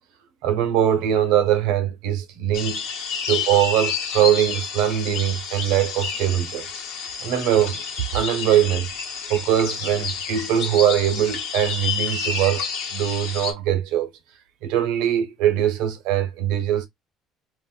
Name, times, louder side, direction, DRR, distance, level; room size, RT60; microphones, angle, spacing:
voice 1, 0.4-2.8 3.3-6.7 7.2-7.8 8.1-8.9 9.3-14.1 14.6-16.9, right 11 dB, 85° right, 0.8 m, -22 dB
sound 1, 2.5-13.5, left 6 dB, 90° left, 1.2 m, -30 dB
3.9 x 2.5 x 2.3 m
cardioid pair, 115°, 0 cm